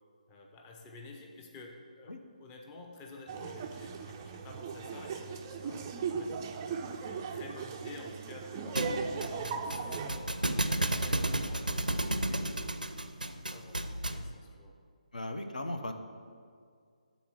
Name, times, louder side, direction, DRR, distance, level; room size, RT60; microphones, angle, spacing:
voice 1, 0.3-2.1 2.4-6.4 6.9-8.8 9.2-12.8 13.2-14.7, left 2 dB, 15° left, 1 dB, 0.6 m, -50 dB
Laughter, 3.3-10.2, right 5 dB, 20° right, 0.3 m, -38 dB
Thump thud, 8.8-14.3, right 1 dB, 85° right, 0.4 m, -33 dB
voice 2, 15.1-15.9, left 1 dB, 65° left, 6 dB, 0.7 m, -37 dB
7.1 x 4.1 x 6.1 m, 2.2 s
figure-of-eight pair, 145°, 4 cm